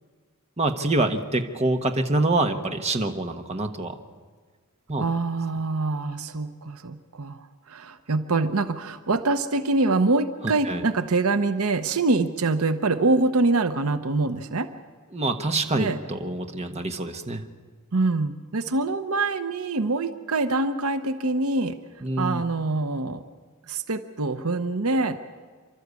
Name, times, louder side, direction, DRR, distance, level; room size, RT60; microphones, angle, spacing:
voice 1, 0.6-4.0 4.9-5.0 10.7-10.8 15.1-17.4 22.0-22.4, right 2 dB, 30° right, 6 dB, 1.2 m, -26 dB
voice 2, 5.0-14.7 15.7-16.0 17.9-21.7 22.2-23.2 23.7-25.2, right 3 dB, 75° right, 10 dB, 0.9 m, -25 dB
29.0 x 12.5 x 8.3 m, 1.5 s
head